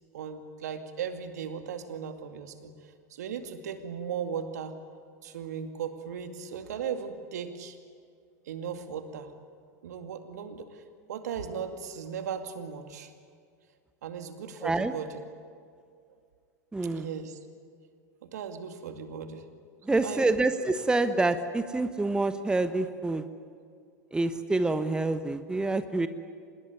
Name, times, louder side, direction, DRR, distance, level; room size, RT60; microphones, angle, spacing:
voice 1, 0.1-4.8 5.2-7.8 8.5-9.3 9.8-10.8 11.1-13.1 14.0-15.1 16.8-17.4 18.2-19.4 20.0-20.3, right 7 dB, 65° right, 7 dB, 2.3 m, -37 dB
voice 2, 14.6-14.9 16.7-17.1 19.8-23.2 24.1-26.1, right 2 dB, 10° right, 10 dB, 1.2 m, -27 dB
26.0 x 20.5 x 9.7 m, 2.2 s
figure-of-eight pair, 90°, 9 cm